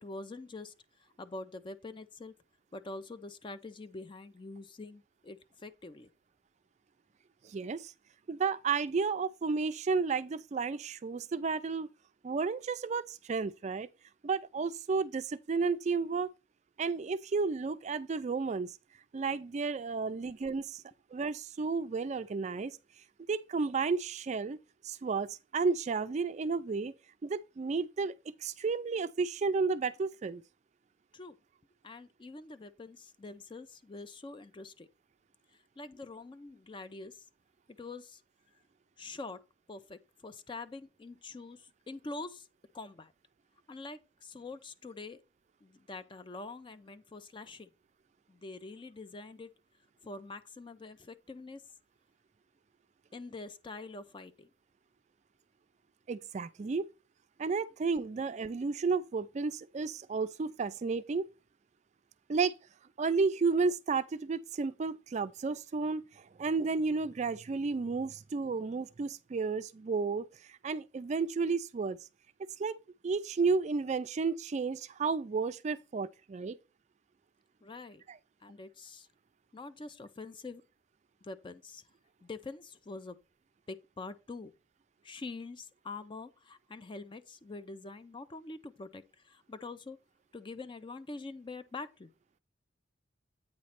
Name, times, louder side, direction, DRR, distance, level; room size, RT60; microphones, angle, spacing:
voice 1, 0.0-2.3 2.7-6.1 31.1-31.4 31.8-34.9 35.5-37.3 37.7-38.2 39.0-39.4 39.7-42.5 42.7-43.1 43.7-45.2 45.6-47.7 48.3-49.5 50.0-51.7 53.1-54.5 77.6-78.0 78.4-79.1 79.5-80.6 81.2-81.9 82.2-83.2 83.7-84.5 85.0-90.0 90.3-92.1, left 3 dB, 25° left, 0.4 m, -45 dB
voice 2, 7.4-7.9 8.3-11.9 12.2-13.9 14.2-16.3 16.8-18.8 19.1-20.8 21.1-22.8 23.3-24.6 24.8-26.9 27.2-28.1 28.4-30.4 56.1-56.9 57.4-61.3 62.3-62.6 63.0-72.0 72.6-72.8 73.0-76.6, right 4 dB, 35° right, 0.3 m, -32 dB
8.6 x 3.1 x 5.7 m
head